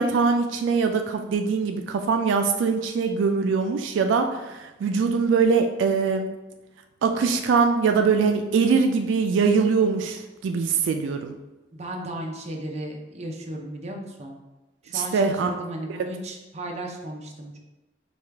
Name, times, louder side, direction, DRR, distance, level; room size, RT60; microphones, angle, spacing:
voice 1, 0.0-6.3 7.0-11.3 14.9-15.5, right 5 dB, 85° right, 5 dB, 0.3 m, -22 dB
voice 2, 11.7-14.4 14.8-17.6, right 1 dB, 35° right, 1 dB, 0.6 m, -35 dB
4.8 x 2.3 x 3.3 m, 1.1 s
head